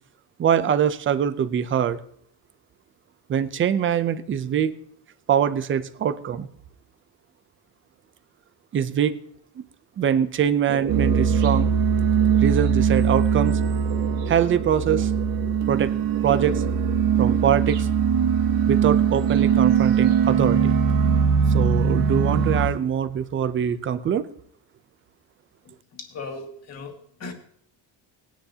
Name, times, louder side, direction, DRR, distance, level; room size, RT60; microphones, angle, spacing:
voice 1, 0.4-2.0 3.3-4.8 5.3-6.5 8.7-9.1 9.6-9.7 10.0-11.7 12.4-13.6 14.3-15.1 15.7-15.9 16.2-16.6 17.2-17.9 18.7-20.8 21.5-24.3, right 8 dB, 25° right, 13 dB, 0.4 m, -23 dB
sound 1, 10.7-17.9 18.9-20.2 20.5-21.5, right 6 dB, 65° right, 2.6 m, -37 dB
sound 2, 10.9-22.7, right 7 dB, 45° right, 1.3 m, -21 dB
voice 2, 25.9-27.3, left 3 dB, 35° left, 3 dB, 1.9 m, -37 dB
19.5 x 10.0 x 2.8 m, 0.66 s
cardioid pair, 175°, 47 cm